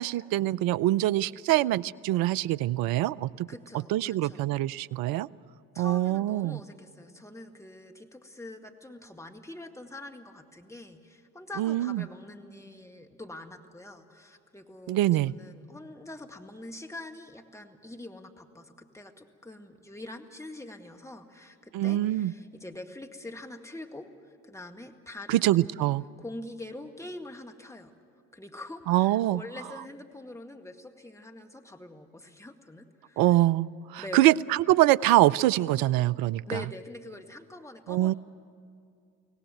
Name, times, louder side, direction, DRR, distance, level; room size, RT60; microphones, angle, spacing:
voice 1, 0.0-3.5 3.9-5.3 5.8-6.6 11.6-12.0 14.9-15.3 21.7-22.3 25.3-26.0 28.9-29.4 33.2-36.4 37.9-38.1, right 15 dB, 60° right, 19 dB, 0.6 m, -24 dB
voice 2, 3.5-4.5 5.7-25.8 26.2-27.9 28.3-33.4 34.0-34.4 36.5-38.1, left 2 dB, 5° left, 4 dB, 1.9 m, -44 dB
24.5 x 17.5 x 9.1 m, 2.3 s
hypercardioid pair, 50°, 41 cm